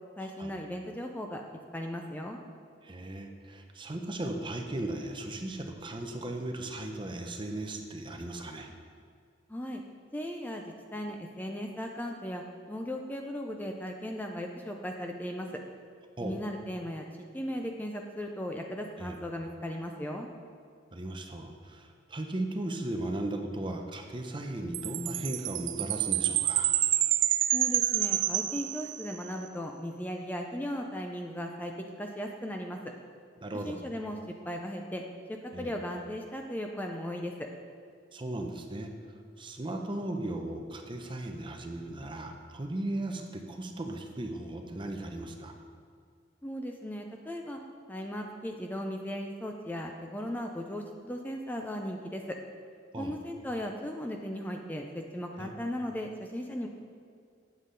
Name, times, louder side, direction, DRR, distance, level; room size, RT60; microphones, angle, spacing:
voice 1, 0.2-2.4 9.5-9.8 10.1-12.4 12.7-15.5 16.2-17.0 17.3-20.3 27.5-31.7 32.0-32.8 33.6-34.2 34.5-35.0 35.3-37.5 46.4-47.6 47.9-52.4 53.0-56.7, equal, 10° left, 2 dB, 0.4 m, -37 dB
voice 2, 2.8-8.7 16.2-16.4 19.0-19.2 20.9-26.7 33.4-33.8 35.5-35.7 38.1-38.9 39.4-45.5 52.9-53.1 55.4-55.5, right 1 dB, 25° right, 4 dB, 0.7 m, -37 dB
Chime, 24.7-29.2, right 13 dB, 90° right, 0.4 m, -28 dB
8.2 x 7.5 x 3.8 m, 2.2 s
head